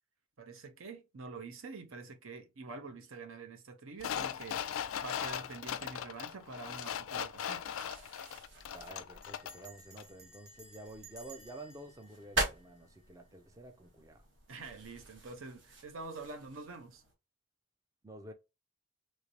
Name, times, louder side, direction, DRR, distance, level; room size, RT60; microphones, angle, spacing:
voice 1, 0.4-7.6 14.5-17.0, right 3 dB, 80° right, 0.7 m, -46 dB
sound 1, 4.0-9.7 10.0-10.1, left 9 dB, 80° left, 0.4 m, -39 dB
sound 2, 5.2-17.1, right 2 dB, 60° right, 1.2 m, -44 dB
voice 2, 8.7-14.3 18.0-18.3, right 2 dB, 15° right, 0.4 m, -50 dB
Bell, 9.2-13.3, right 2 dB, 35° right, 1.0 m, -57 dB
3.2 x 3.1 x 2.6 m
head